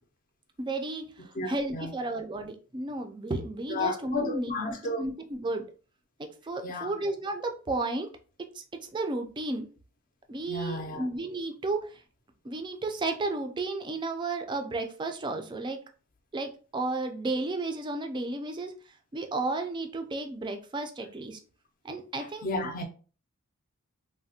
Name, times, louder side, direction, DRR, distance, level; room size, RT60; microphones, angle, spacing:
voice 1, 0.6-4.5 5.0-5.6 6.4-8.1 8.5-9.7 10.3-12.0 12.4-15.8 16.3-18.7 19.1-21.4 21.8-22.5, right 2 dB, 20° right, 0.3 m, -33 dB
voice 2, 1.3-1.9 3.7-5.0 6.6-6.9 10.5-11.1 22.2-22.9, left 2 dB, 40° left, 0.5 m, -33 dB
3.2 x 2.1 x 2.7 m
head